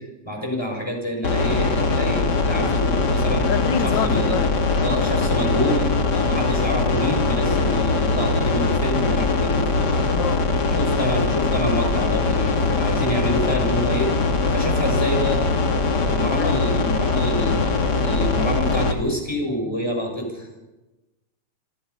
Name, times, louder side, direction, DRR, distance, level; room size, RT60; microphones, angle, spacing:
voice 1, 0.2-3.5 3.8-4.4 4.8-9.8 10.7-14.1 14.5-15.4 16.0-20.5, equal, 10° left, 1 dB, 6.7 m, -27 dB
sound 1, 1.2-18.9, left 3 dB, 40° left, 2.2 m, -21 dB
voice 2, 2.4-2.7 3.4-4.5 10.1-10.5 16.4-16.6, left 8 dB, 85° left, 11 dB, 1.0 m, -28 dB
27.5 x 26.0 x 5.8 m, 1.1 s
omnidirectional pair, 3.4 m